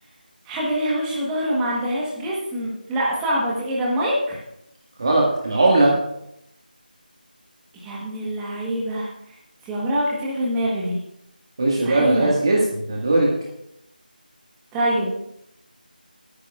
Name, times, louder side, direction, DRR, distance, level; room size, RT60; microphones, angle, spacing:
voice 1, 0.4-4.4 7.7-9.1 9.6-11.0 11.8-12.3 14.7-15.1, equal, 5° right, -5 dB, 1.3 m, -24 dB
voice 2, 5.0-5.9 11.6-13.3, right 2 dB, 30° right, -3 dB, 1.8 m, -19 dB
22.5 x 9.6 x 2.5 m, 0.81 s
figure-of-eight pair, 170°, 5 cm